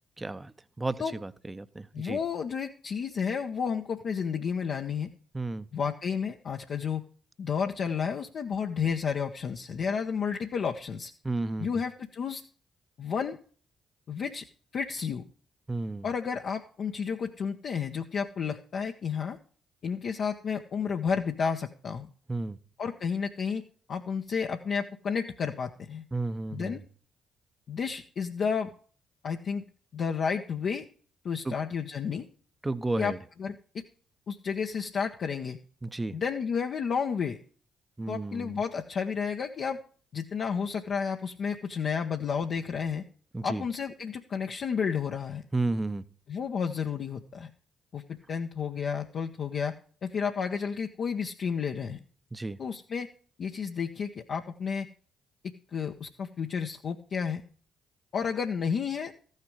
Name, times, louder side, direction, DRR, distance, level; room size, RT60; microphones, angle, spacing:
voice 1, 0.2-2.2 5.3-5.7 11.2-11.7 15.7-16.1 22.3-22.6 26.1-26.8 31.4-31.6 32.6-33.2 35.8-36.2 38.0-38.6 43.3-43.6 45.5-46.0 52.3-52.6, right 2 dB, 20° right, 14 dB, 0.8 m, -32 dB
voice 2, 1.9-5.1 5.7-7.0 7.4-11.1 11.6-12.4 13.0-13.4 14.1-14.4 14.7-15.2 16.0-19.4 19.8-22.1 22.8-23.6 23.9-26.0 26.5-26.8 27.7-28.7 29.2-29.6 29.9-30.8 31.2-32.3 33.0-33.1 33.4-33.8 34.3-35.6 36.1-37.4 38.1-39.8 40.1-43.0 43.4-45.4 46.3-47.5 47.9-48.0 48.3-49.8 50.0-52.0 52.6-53.1 53.4-54.9 55.4-57.4 58.1-59.1, left 6 dB, 55° left, 2 dB, 0.8 m, -31 dB
14.0 x 6.6 x 4.8 m, 0.42 s
hypercardioid pair, 45°, 0 cm